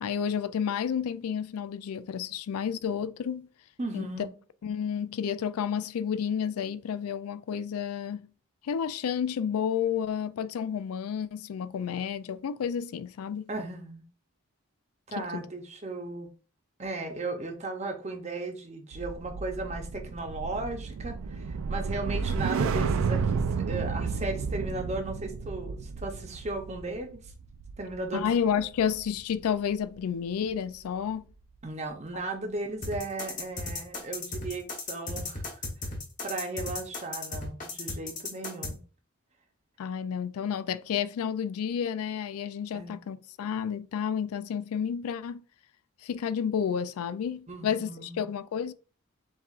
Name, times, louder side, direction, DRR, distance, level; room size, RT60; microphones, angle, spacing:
voice 1, 0.0-3.5 3.9-4.1 4.6-8.3 8.6-13.4 15.2-15.5 28.1-31.2 39.8-45.4 46.0-48.7, left 7 dB, 85° left, 0.3 m, -31 dB
voice 2, 3.8-4.4 13.5-14.1 15.1-16.3 16.8-27.3 27.8-28.3 28.5-28.6 31.6-35.6 36.2-38.8 42.7-43.0 47.5-48.2, right 2 dB, 30° right, 0.7 m, -36 dB
sound 1, 18.9-29.3 29.7-30.0, right 5 dB, 70° right, 0.3 m, -32 dB
sound 2, 32.8-38.7, left 3 dB, 35° left, 1.0 m, -35 dB
7.1 x 2.4 x 2.4 m
head